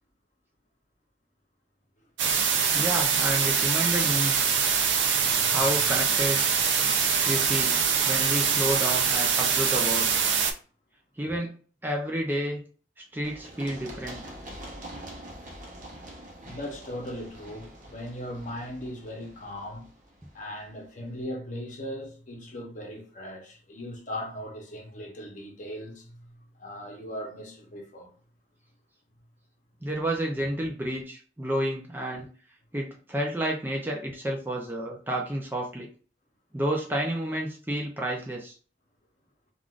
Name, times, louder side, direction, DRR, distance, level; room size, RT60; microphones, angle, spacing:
sound 1, 2.2-10.5, right 6 dB, 85° right, 0.5 m, -24 dB
voice 1, 2.7-4.4 5.5-6.4 7.2-7.8 8.1-10.1 11.2-11.6 11.8-12.6 13.1-14.2 29.8-32.3 32.7-35.9 36.5-38.5, right 1 dB, 10° right, 0.5 m, -30 dB
voice 2, 5.1-5.6 16.4-19.9 20.3-28.1, equal, 45° left, 0.8 m, -39 dB
Run, 13.2-20.9, right 1 dB, 45° right, 0.8 m, -45 dB
3.5 x 2.4 x 2.4 m
head